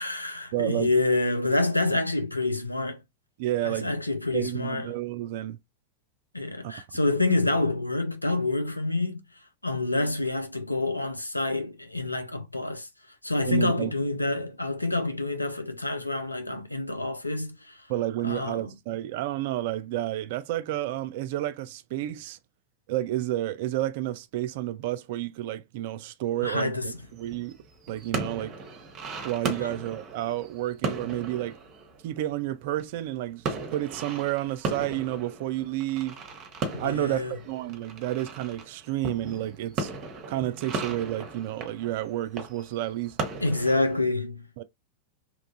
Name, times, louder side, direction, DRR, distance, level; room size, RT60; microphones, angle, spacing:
voice 1, 0.0-3.0 3.6-4.9 6.3-9.2 9.6-12.9 13.2-17.8 18.2-18.6 26.4-27.0 29.6-29.7 36.8-37.3 43.4-44.6, left 2 dB, 85° left, 0.5 m, -27 dB
voice 2, 0.5-0.9 3.4-4.0 4.3-5.6 6.6-6.7 13.4-13.9 17.9-22.4 22.9-27.6 27.9-28.5 29.2-31.6 32.0-36.2 36.8-39.9 40.3-43.2 44.6-44.7, right 14 dB, 50° right, 0.3 m, -30 dB
sound 1, 26.9-33.2 33.4-44.0, right 3 dB, 30° right, 0.8 m, -37 dB
2.9 x 2.4 x 2.6 m
figure-of-eight pair, 90°, 0 cm